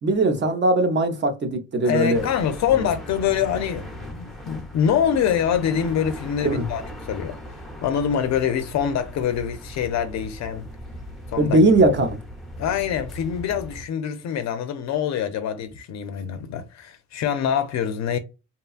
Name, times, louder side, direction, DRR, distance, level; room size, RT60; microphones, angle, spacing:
voice 1, 0.0-2.3 2.8-2.9 6.4-6.7 11.4-12.2, right 2 dB, 35° right, 0.7 m, -19 dB
voice 2, 1.8-6.8 7.1-7.4 7.8-10.7 11.3-11.6 12.6-18.2, left 8 dB, 65° left, 0.4 m, -25 dB
sound 1, 2.1-13.9, equal, ahead, 0.7 m, -38 dB
2.8 x 2.2 x 2.3 m
cardioid pair, 90°, 30 cm